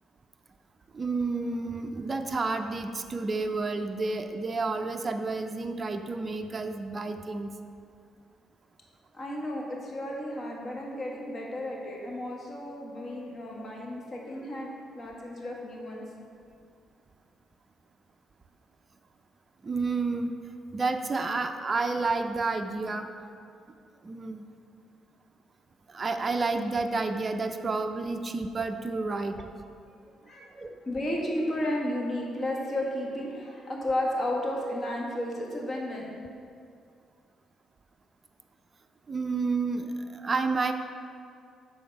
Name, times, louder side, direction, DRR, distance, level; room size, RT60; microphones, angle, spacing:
voice 1, 0.9-7.5 19.6-20.3 20.7-23.1 24.0-24.5 25.9-29.4 30.5-30.7 39.1-40.7, right 3 dB, 35° right, 6 dB, 0.4 m, -30 dB
voice 2, 9.1-16.0 30.3-30.5 30.8-36.1, left 1 dB, 40° left, -2 dB, 1.5 m, -33 dB
7.7 x 4.1 x 5.3 m, 2.3 s
cardioid pair, 90°, 0 cm